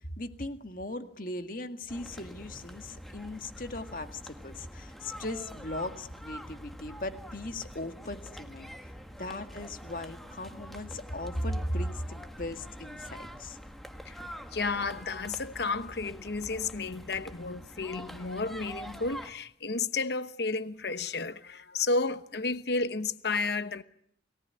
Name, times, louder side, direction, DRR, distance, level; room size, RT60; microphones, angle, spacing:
voice 1, 0.0-8.7 9.2-13.6 14.3-14.4, left 1 dB, 50° left, 1.9 m, -38 dB
sound 1, 1.9-19.3, equal, ahead, 1.7 m, -45 dB
voice 2, 14.5-23.8, left 3 dB, 70° left, 1.0 m, -32 dB
29.5 x 18.5 x 9.6 m
head